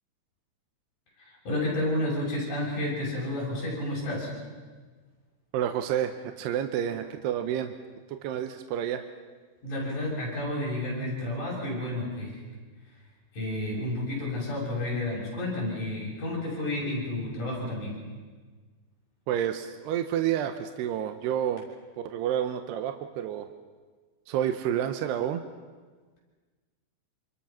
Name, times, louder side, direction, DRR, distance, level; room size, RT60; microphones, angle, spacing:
voice 1, 1.2-4.3 9.6-12.4 13.3-18.0, left 1 dB, 50° left, -4 dB, 8.3 m, -31 dB
voice 2, 5.5-7.7 8.1-9.0 19.3-21.7 22.0-23.5 24.3-25.4, right 10 dB, 80° right, 7 dB, 2.9 m, -29 dB
27.5 x 26.5 x 5.9 m, 1.4 s
omnidirectional pair, 5.0 m